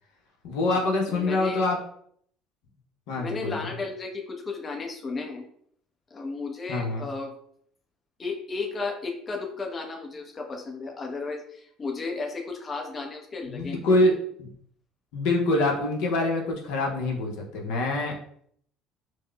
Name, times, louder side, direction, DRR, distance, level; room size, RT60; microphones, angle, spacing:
voice 1, 0.4-1.8 3.1-3.7 6.7-7.1 13.5-14.1 14.4-14.5 15.1-18.1, left 2 dB, 75° left, 0 dB, 0.7 m, -25 dB
voice 2, 1.1-1.6 3.2-5.4 6.1-7.3 8.2-13.8, left 3 dB, 30° left, 1 dB, 0.7 m, -34 dB
4.6 x 2.0 x 2.3 m, 0.65 s
hypercardioid pair, 70°, 0 cm